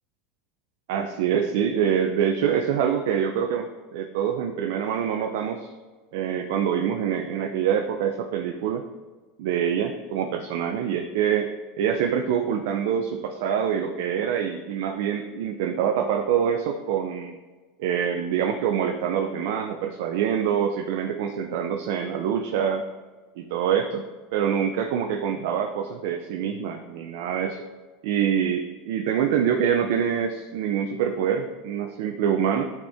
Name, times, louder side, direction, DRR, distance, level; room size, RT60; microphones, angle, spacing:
voice 1, 0.9-5.7 6.1-8.8 9.4-11.5 11.8-17.3 17.8-22.8 23.4-24.0 24.3-27.6 28.0-32.6, right 8 dB, 70° right, 4 dB, 0.6 m, -25 dB
10.5 x 4.4 x 3.6 m, 1.3 s
supercardioid pair, 105°, 0 cm